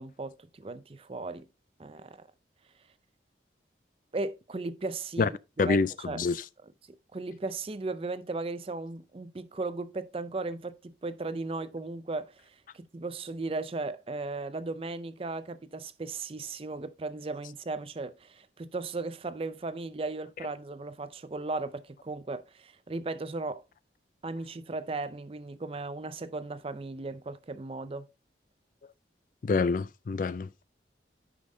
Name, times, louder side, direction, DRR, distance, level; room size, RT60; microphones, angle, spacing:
voice 1, 0.0-1.5 1.8-2.3 4.1-6.2 6.9-23.6 24.2-28.1, right 3 dB, 30° right, 0.4 m, -36 dB
voice 2, 5.6-6.4 29.4-30.6, left 4 dB, 50° left, 0.4 m, -27 dB
9.6 x 5.3 x 2.7 m
head